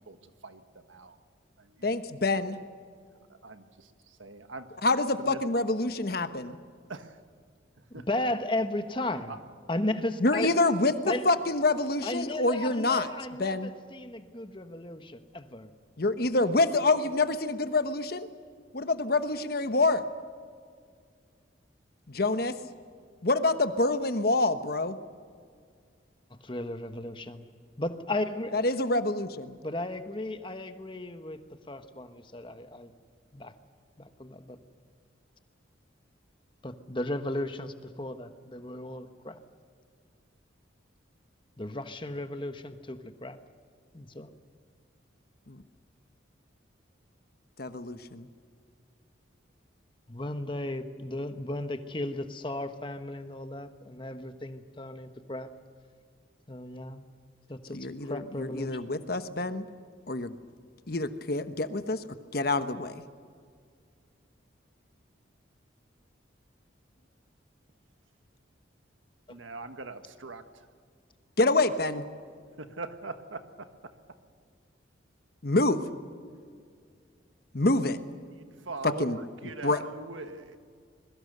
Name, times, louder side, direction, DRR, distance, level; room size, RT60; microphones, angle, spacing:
voice 1, 1.8-2.6 4.8-6.6 10.2-13.1 13.4-13.7 16.0-18.3 18.7-20.0 22.1-22.6 23.2-25.0 28.5-29.6 45.5-45.6 47.6-48.3 57.7-59.6 60.1-60.3 60.9-62.1 62.3-63.0 71.4-72.0 75.4-75.8 77.5-78.0 78.8-79.2 79.6-79.8, left 2 dB, 50° left, 10 dB, 1.1 m, -27 dB
voice 2, 3.4-3.9 4.2-4.6 5.2-5.4 6.9-7.2 7.9-8.0 69.3-70.4 72.6-73.4 78.4-80.6, right 3 dB, 85° right, 9 dB, 1.6 m, -41 dB
voice 3, 7.9-9.4 9.7-10.5 11.0-11.2 12.0-15.7 26.3-27.5 27.8-28.6 29.6-31.4 31.7-32.9 33.3-33.5 34.0-34.6 36.6-39.4 41.6-43.4 43.9-44.3 50.1-55.5 56.5-57.1 57.5-58.8 69.3-69.4, left 1 dB, 25° left, 9 dB, 1.2 m, -35 dB
27.0 x 22.0 x 6.7 m, 2.1 s
head